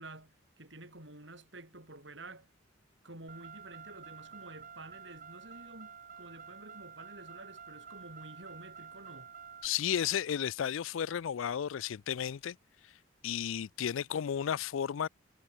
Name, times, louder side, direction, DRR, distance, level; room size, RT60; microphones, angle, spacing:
voice 1, 0.0-2.5 3.0-9.3, right 2 dB, 65° right, 7.2 m, -50 dB
Car, 3.3-9.7, right 6 dB, 45° right, 4.1 m, -50 dB
voice 2, 9.6-12.6 13.2-15.1, left 9 dB, 85° left, 0.4 m, -33 dB
head